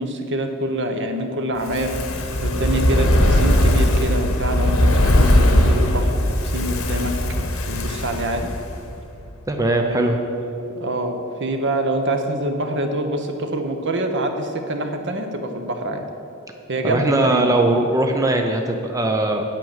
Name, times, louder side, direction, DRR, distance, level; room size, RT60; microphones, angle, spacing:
voice 1, 0.0-1.9 2.4-7.1 7.7-8.5 9.8-16.0 16.7-17.6, right 1 dB, 60° right, 5 dB, 1.1 m, -25 dB
Fire, 1.6-8.9 9.2-9.3, left 1 dB, 75° left, 1.3 m, -19 dB
voice 2, 9.5-10.2 16.8-19.4, right 2 dB, 15° right, 3 dB, 0.6 m, -20 dB
9.2 x 8.4 x 7.3 m, 2.7 s
head